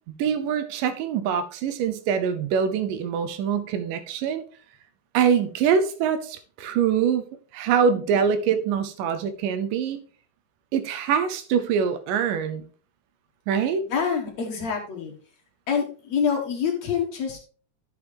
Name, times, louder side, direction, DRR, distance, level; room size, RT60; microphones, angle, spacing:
voice 1, 0.2-4.4 5.1-7.3 7.5-10.0 10.7-12.6 13.5-13.8, right 7 dB, 90° right, 2.4 m, -24 dB
voice 2, 13.9-15.1 15.7-17.4, left 6 dB, 60° left, 2.4 m, -26 dB
10.5 x 6.6 x 3.4 m
omnidirectional pair, 3.7 m